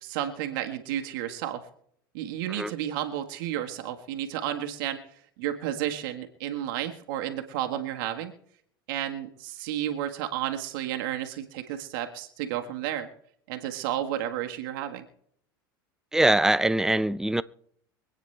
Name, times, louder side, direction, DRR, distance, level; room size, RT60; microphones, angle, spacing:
voice 1, 0.0-1.6 2.1-5.0 5.4-8.3 8.9-13.1 13.5-15.0, right 11 dB, 70° right, 1.6 m, -32 dB
voice 2, 16.1-17.4, right 1 dB, 5° right, 0.5 m, -23 dB
24.5 x 9.3 x 3.3 m
hypercardioid pair, 90°, 12 cm